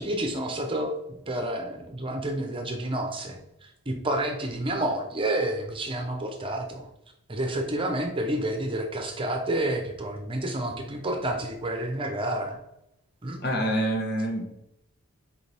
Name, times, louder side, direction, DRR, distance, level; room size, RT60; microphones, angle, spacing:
voice 1, 0.0-6.9 7.3-12.6 13.2-13.4, right 1 dB, 25° right, 3 dB, 0.9 m, -29 dB
voice 2, 13.4-14.4, right 1 dB, 45° left, 1 dB, 1.3 m, -26 dB
6.9 x 4.7 x 3.5 m, 0.79 s
head